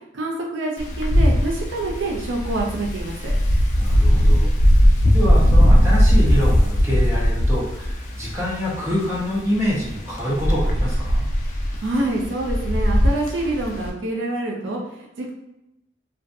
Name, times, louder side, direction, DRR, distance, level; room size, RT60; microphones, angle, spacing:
voice 1, 0.1-3.3 11.8-15.3, right 2 dB, 80° right, 0 dB, 0.5 m, -26 dB
Wind, 0.8-13.9, equal, 40° left, 0.4 m, -18 dB
voice 2, 3.8-11.3, equal, 15° right, -7 dB, 0.7 m, -26 dB
2.4 x 2.2 x 2.5 m, 0.89 s
head